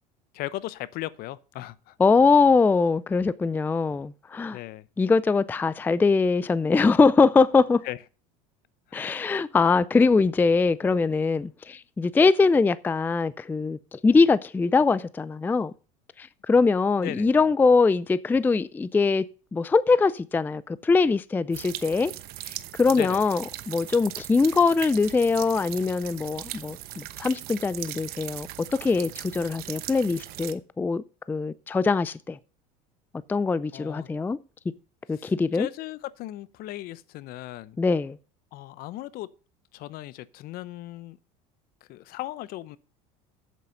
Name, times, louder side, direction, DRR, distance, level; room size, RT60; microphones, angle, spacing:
voice 1, 0.3-1.9 4.5-4.9 7.8-8.0 8.9-9.1 17.0-17.3 22.9-23.2 33.7-34.1 35.1-37.8 38.5-39.3 39.7-41.2 41.9-42.8, left 15 dB, 55° left, 0.7 m, -37 dB
voice 2, 2.0-4.6 5.0-7.8 8.9-15.7 16.2-19.2 19.5-22.1 22.8-32.4 33.3-34.4 35.1-35.7 37.8-38.2, left 4 dB, 10° left, 0.4 m, -22 dB
sound 1, 21.5-30.5, right 14 dB, 60° right, 1.0 m, -39 dB
8.3 x 7.7 x 5.3 m
supercardioid pair, 100°, 18 cm